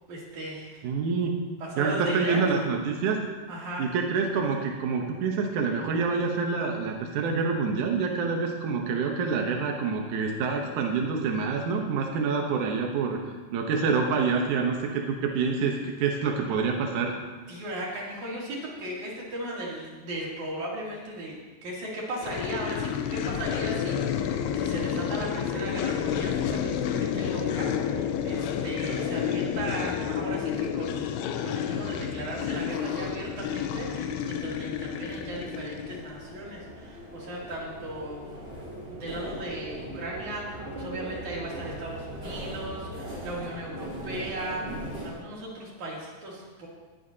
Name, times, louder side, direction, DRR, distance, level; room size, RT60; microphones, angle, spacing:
voice 1, 0.1-0.8 1.6-2.4 3.5-4.0 17.5-31.1 31.4-38.4 38.9-46.7, right 1 dB, 45° right, -5 dB, 4.0 m, -36 dB
voice 2, 0.8-1.4 1.8-3.2 3.8-13.2 13.5-17.1, right 5 dB, 75° right, 1 dB, 1.8 m, -27 dB
sound 1, 22.2-36.1, left 8 dB, 80° left, 2.6 m, -30 dB
sound 2, 32.2-45.1, right 1 dB, 15° right, 3.7 m, -40 dB
19.5 x 11.5 x 2.8 m, 1.4 s
omnidirectional pair, 5.0 m